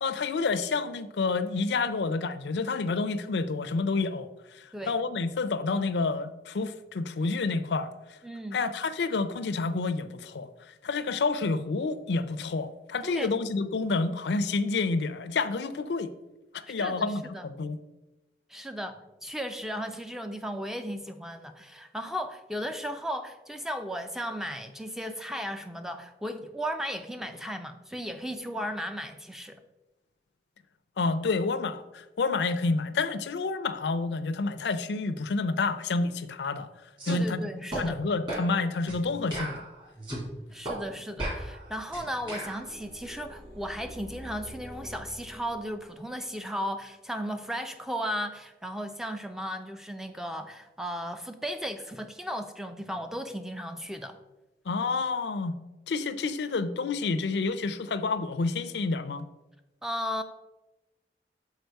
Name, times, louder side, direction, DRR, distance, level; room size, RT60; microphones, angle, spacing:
voice 1, 0.0-7.9 8.5-16.1 16.5-17.8 31.0-36.7 37.1-37.4 37.8-39.6 54.7-55.6 55.9-59.3, left 3 dB, 80° left, 0.5 m, -29 dB
voice 2, 8.2-8.7 13.0-13.4 16.8-17.5 18.5-29.6 37.1-38.0 40.5-54.2 59.8-60.2, equal, 5° right, 0.4 m, -35 dB
sound 1, 37.0-37.2 37.7-37.8 38.3-38.5 38.9-39.0 39.3-40.2 40.6-40.8 41.2-42.6, right 1 dB, 30° right, 2.0 m, -35 dB
sound 2, 41.6-46.2, equal, 55° right, 1.7 m, -47 dB
6.5 x 4.9 x 4.5 m
head